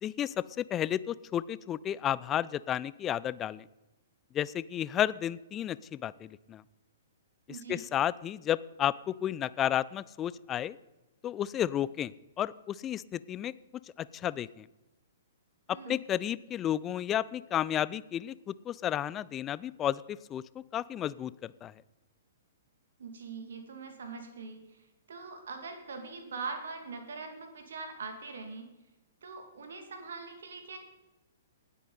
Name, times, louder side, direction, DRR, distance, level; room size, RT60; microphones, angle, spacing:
voice 1, 0.0-3.6 4.3-6.6 7.7-10.8 11.2-12.1 12.4-13.5 14.0-14.7 15.7-20.4 20.7-21.7, left 11 dB, 20° left, 19 dB, 0.4 m, -32 dB
voice 2, 7.5-7.9 15.7-16.0 23.0-24.8 25.1-28.6 29.2-30.8, right 4 dB, 60° right, 5 dB, 2.3 m, -42 dB
19.0 x 8.2 x 4.1 m, 1.0 s
figure-of-eight pair, 115°, 0 cm